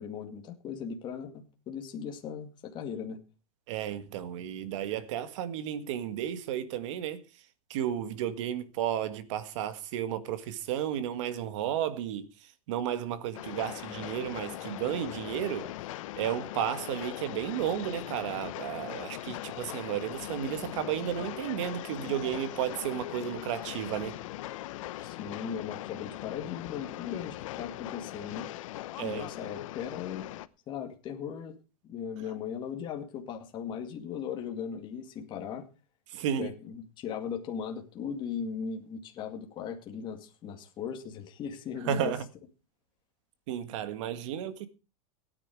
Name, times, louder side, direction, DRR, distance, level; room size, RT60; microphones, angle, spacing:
voice 1, 0.0-3.2 25.0-28.5 29.0-30.3 30.7-31.5 31.8-35.7 36.4-42.1, left 7 dB, 25° left, 2.2 m, -38 dB
voice 2, 3.7-7.2 7.7-15.7 16.2-24.2 29.0-29.3 36.1-36.5 41.9-42.2 43.5-44.7, right 10 dB, 55° right, 1.8 m, -33 dB
Train, 13.3-30.5, left 15 dB, 65° left, 0.9 m, -40 dB
17.0 x 9.9 x 4.8 m
supercardioid pair, 160°, 18 cm